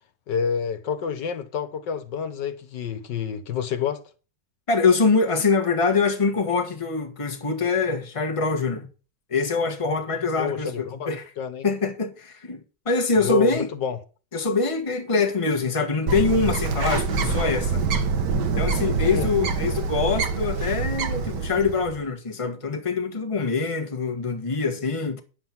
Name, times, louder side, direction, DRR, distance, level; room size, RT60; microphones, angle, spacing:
voice 1, 0.3-4.0 10.4-11.1 11.4-11.7 13.2-14.0 19.1-19.3, left 7 dB, 75° left, 1.7 m, -28 dB
voice 2, 4.7-8.9 9.3-11.2 11.6-12.6 12.8-13.7 14.3-17.8 18.6-25.2, left 4 dB, 20° left, 1.4 m, -24 dB
Bird, 16.1-22.0, right 4 dB, 70° right, 1.8 m, -25 dB
9.9 x 7.7 x 5.9 m
omnidirectional pair, 2.0 m